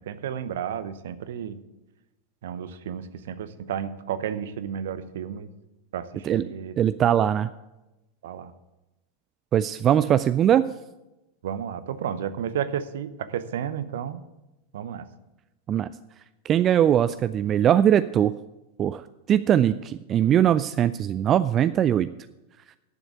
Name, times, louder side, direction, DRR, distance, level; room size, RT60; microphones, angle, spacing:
voice 1, 0.1-1.6 2.4-5.5 5.9-6.8 8.2-8.5 11.4-14.2 14.7-15.1, right 9 dB, 60° right, 13 dB, 0.8 m, -32 dB
voice 2, 6.8-7.5 9.5-10.7 15.7-15.9 16.5-18.3 18.8-22.1, right 10 dB, 30° right, 14 dB, 0.3 m, -21 dB
11.0 x 7.1 x 8.1 m, 0.99 s
figure-of-eight pair, 90°, 0 cm